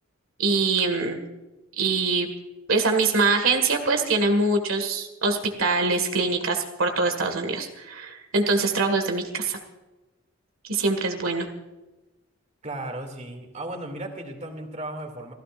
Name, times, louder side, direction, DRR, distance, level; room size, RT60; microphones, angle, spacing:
voice 1, 0.4-1.2 1.8-2.3 2.7-9.6 10.7-11.5, right 3 dB, 90° right, 6 dB, 1.9 m, -23 dB
voice 2, 12.6-15.3, right 1 dB, 35° right, 4 dB, 2.6 m, -35 dB
29.0 x 16.0 x 2.6 m, 1.1 s
head